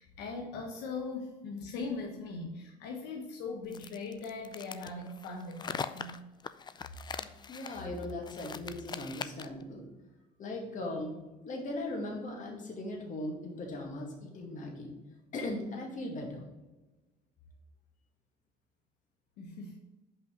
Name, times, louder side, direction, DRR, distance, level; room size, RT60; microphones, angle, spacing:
voice 1, 0.0-6.2 19.4-19.8, left 3 dB, 90° left, 1 dB, 1.0 m, -40 dB
sound 1, 3.7-9.6, left 6 dB, 25° left, 0.4 m, -41 dB
voice 2, 7.1-9.9 10.4-11.2 11.4-14.9 15.3-16.5, left 1 dB, 50° left, 0 dB, 2.1 m, -39 dB
5.5 x 5.3 x 5.1 m, 1.1 s
cardioid pair, 110°, 17 cm